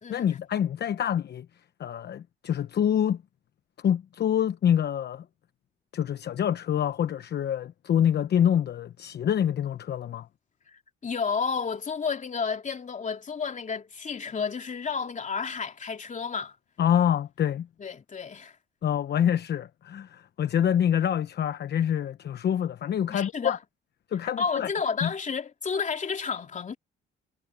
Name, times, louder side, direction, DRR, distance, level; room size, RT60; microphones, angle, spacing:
voice 1, 0.1-1.5 1.8-3.2 3.8-5.2 5.9-10.3 16.8-17.7 18.8-23.6 24.1-24.7 25.0-25.1, left 9 dB, 55° left, 0.9 m, -26 dB
voice 2, 10.7-16.5 17.8-18.6 23.1-23.6 24.4-26.8, left 5 dB, 40° left, 3.0 m, -31 dB
cardioid pair, 90°, 20 cm